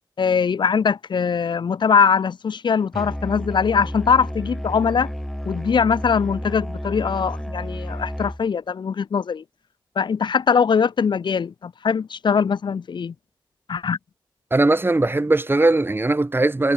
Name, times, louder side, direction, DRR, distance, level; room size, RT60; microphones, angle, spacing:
voice 1, 0.2-5.1 5.4-9.4 9.9-13.1 13.7-14.0, left 6 dB, 70° left, 1.6 m, -21 dB
Musical instrument, 2.9-8.4, equal, 5° left, 2.2 m, -31 dB
voice 2, 14.5-16.7, right 2 dB, 25° right, 3.9 m, -19 dB
cardioid pair, 50°, 8 cm